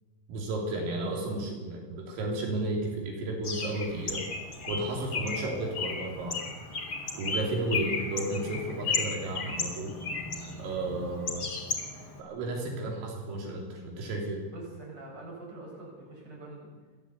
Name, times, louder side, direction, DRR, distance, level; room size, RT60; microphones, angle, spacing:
voice 1, 0.3-4.3 4.7-6.4 7.1-10.0 10.6-11.5 12.2-14.5, right 2 dB, 80° right, 0 dB, 6.0 m, -33 dB
Bird, 3.4-12.2, left 4 dB, 30° left, 3.0 m, -35 dB
voice 2, 14.5-16.7, right 2 dB, 20° right, -2 dB, 7.5 m, -44 dB
29.5 x 12.5 x 8.3 m, 1.3 s
omnidirectional pair, 5.8 m